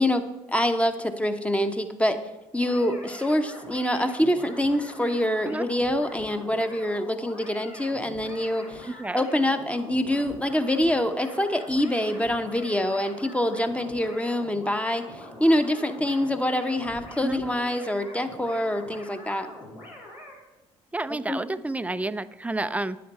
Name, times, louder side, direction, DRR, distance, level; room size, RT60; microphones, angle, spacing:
voice 1, 0.0-2.2 2.5-15.0 15.4-19.5 21.3-21.4, left 1 dB, 5° left, 8 dB, 0.9 m, -25 dB
sound 1, 2.6-20.4, left 1 dB, 85° left, 2.2 m, -44 dB
voice 2, 8.9-9.2 17.2-17.4 20.9-23.0, right 2 dB, 10° right, 15 dB, 0.4 m, -30 dB
10.0 x 8.6 x 4.2 m, 1.0 s
hypercardioid pair, 50°, 17 cm